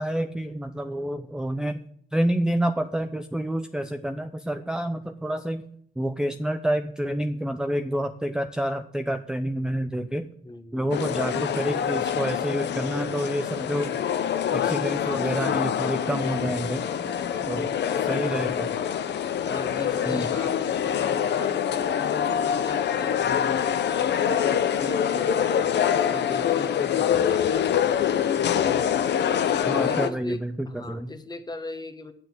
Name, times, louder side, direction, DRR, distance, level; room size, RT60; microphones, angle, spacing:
voice 1, 0.0-1.8 2.1-5.6 6.0-10.2 10.7-13.9 14.5-16.8 17.5-17.7 18.1-18.7 20.1-20.3 29.7-31.1, right 1 dB, 5° right, 8 dB, 0.6 m, -28 dB
voice 2, 10.4-11.0 15.0-15.4 16.1-16.8 17.1-18.7 19.5-28.5 29.5-32.1, left 2 dB, 20° left, 8 dB, 1.3 m, -39 dB
sound 1, 10.9-30.1, left 9 dB, 60° left, 0.8 m, -25 dB
9.2 x 6.5 x 8.0 m, 0.67 s
cardioid pair, 90°, 20 cm